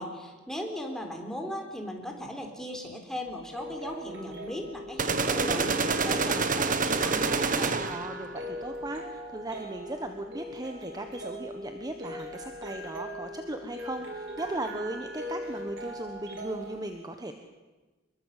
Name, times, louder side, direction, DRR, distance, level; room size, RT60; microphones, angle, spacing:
voice 1, 0.0-7.8, equal, 5° left, 2 dB, 3.9 m, -38 dB
sound 1, 3.3-16.8, equal, 65° right, 4.4 m, -40 dB
sound 2, 5.0-8.1, right 4 dB, 45° right, 1.5 m, -27 dB
voice 2, 7.8-17.3, right 2 dB, 20° right, 6 dB, 1.3 m, -37 dB
24.5 x 22.5 x 8.4 m, 1.2 s
head